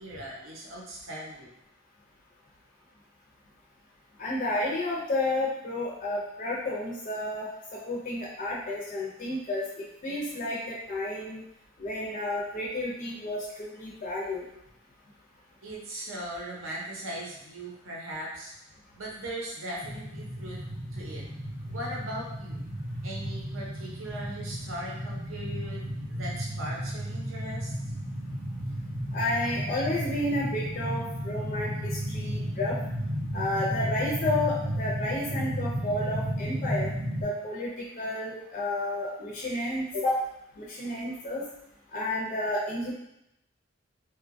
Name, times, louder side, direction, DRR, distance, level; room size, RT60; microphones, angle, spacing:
voice 1, 0.0-1.5 15.6-18.5 18.9-20.6 20.9-21.2 21.7-22.6 23.0-27.7, right 1 dB, 75° right, -3 dB, 0.7 m, -39 dB
voice 2, 4.2-9.6 10.0-11.4 11.8-14.5 29.1-32.8 33.3-36.9 37.2-40.2 40.6-41.4 41.9-42.9, left 1 dB, 40° left, -5 dB, 0.4 m, -31 dB
sound 1, 19.8-37.2, equal, 25° right, 0.5 m, -33 dB
2.7 x 2.2 x 2.5 m, 0.82 s
head